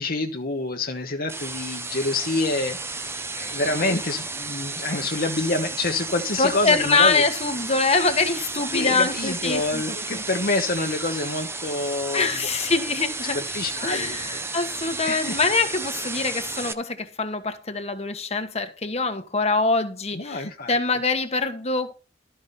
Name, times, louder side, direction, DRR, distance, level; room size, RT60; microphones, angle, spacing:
voice 1, 0.0-3.1 3.3-7.2 8.7-12.3 13.3-14.7 15.0-15.4 20.1-20.7, left 2 dB, 55° left, 1.2 m, -27 dB
sound 1, 1.3-16.7, right 3 dB, 15° right, 0.9 m, -33 dB
voice 2, 6.4-10.2 12.1-13.4 13.8-21.9, left 3 dB, 35° left, 1.5 m, -24 dB
13.0 x 5.6 x 5.3 m
head